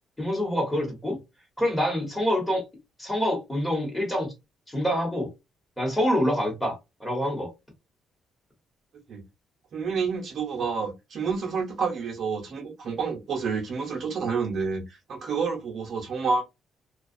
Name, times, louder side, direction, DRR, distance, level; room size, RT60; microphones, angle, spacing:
voice 1, 0.2-1.2 1.6-2.6 3.0-4.3 4.7-5.3 5.8-7.5, equal, 10° left, 1.3 m, -26 dB
voice 2, 9.7-16.4, right 5 dB, 55° right, 0.8 m, -29 dB
2.3 x 2.3 x 2.6 m
cardioid pair, 130°, 0 cm